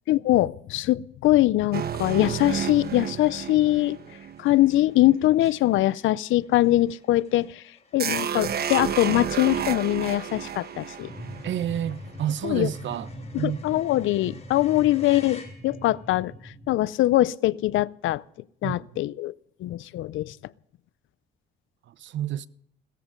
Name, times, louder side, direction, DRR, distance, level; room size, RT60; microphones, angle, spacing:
voice 1, 0.1-4.0 4.4-7.6 7.9-11.1 12.4-12.7 13.3-18.2 18.6-19.3 19.6-20.4, left 15 dB, 80° left, 0.6 m, -22 dB
sound 1, 1.6-2.1 2.4-2.5 2.8-16.1, left 4 dB, 35° left, 5.3 m, -53 dB
sound 2, 1.7-5.2 8.0-12.1, right 8 dB, 50° right, 1.2 m, -31 dB
sound 3, 11.0-16.7, equal, ahead, 3.4 m, -42 dB
voice 2, 11.4-13.1 13.4-14.1 18.6-19.1 21.9-22.5, right 10 dB, 70° right, 0.8 m, -30 dB
17.5 x 14.5 x 5.2 m
cardioid pair, 90°, 20 cm